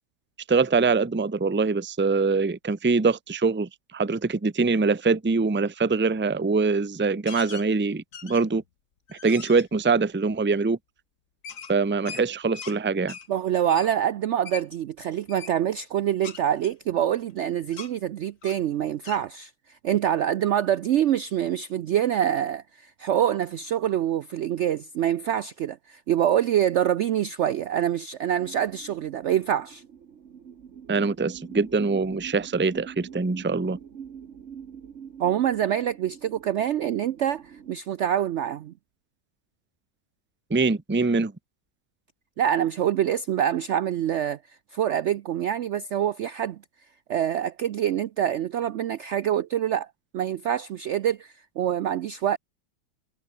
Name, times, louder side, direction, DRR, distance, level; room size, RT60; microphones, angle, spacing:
voice 1, 0.5-8.6 9.2-10.8 11.7-13.1 30.9-33.8 40.5-41.3, right 4 dB, 15° right, 0.4 m, -23 dB
sound 1, 7.3-7.7 8.1-8.6 9.1-9.7 11.4-12.8 13.1-13.3 13.7-13.9 14.5-14.7 15.3-15.5 16.2-17.4 17.7-17.9 18.4-18.7 19.0-19.2, left 7 dB, 50° left, 1.8 m, -40 dB
voice 2, 13.3-29.8 35.2-38.7 42.4-46.6 47.1-49.9 50.1-52.4, right 10 dB, 85° right, 0.6 m, -25 dB
sound 2, 28.3-37.7, right 7 dB, 45° right, 1.3 m, -44 dB
omnidirectional pair, 1.8 m